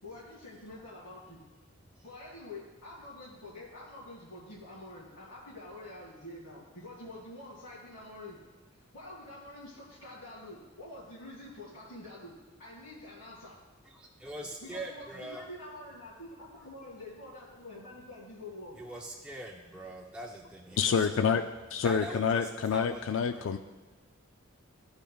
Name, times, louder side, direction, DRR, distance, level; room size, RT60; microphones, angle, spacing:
voice 1, 0.0-1.4 2.0-8.4 8.7-13.6 14.6-18.8, left 1 dB, 85° left, -10 dB, 2.2 m, -47 dB
voice 2, 13.9-15.4 18.8-21.3 21.8-23.6, right 1 dB, 5° right, -2 dB, 0.4 m, -43 dB
voice 3, 20.8-21.4 21.7-23.6, left 6 dB, 65° left, 8 dB, 0.3 m, -27 dB
13.5 x 5.2 x 2.3 m, 1.2 s
head